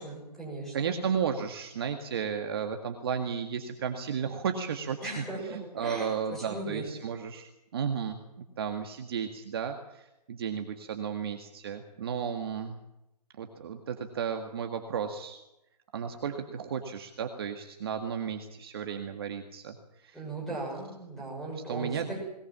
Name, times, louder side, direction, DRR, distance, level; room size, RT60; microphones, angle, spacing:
voice 1, 0.0-0.9 5.0-6.8 20.1-22.2, right 2 dB, ahead, -3 dB, 6.5 m, -38 dB
voice 2, 0.7-8.2 8.6-12.8 13.4-15.4 15.9-20.2 21.6-22.2, right 7 dB, 35° right, 5 dB, 1.8 m, -34 dB
21.0 x 21.0 x 7.5 m, 0.88 s
hypercardioid pair, 170°, 21 cm